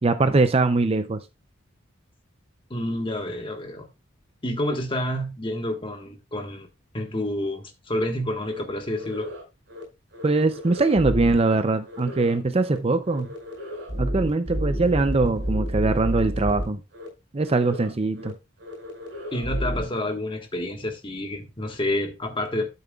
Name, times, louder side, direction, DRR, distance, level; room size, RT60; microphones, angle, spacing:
voice 1, 0.0-1.2 10.2-13.3 14.0-16.8 17.3-18.3, right 3 dB, 30° right, 0.5 m, -22 dB
voice 2, 2.7-3.9 4.4-6.7 6.9-9.3 19.3-22.7, left 1 dB, 25° left, 1.4 m, -29 dB
sound 1, 8.5-8.6 8.9-9.4 9.7-9.8 10.1-11.5 11.9-12.4 12.6-12.8 13.1-16.6 16.9-17.1 17.4-17.9 18.2-18.3 18.6-19.8, equal, 60° right, 5.0 m, -31 dB
12.0 x 6.8 x 2.4 m
head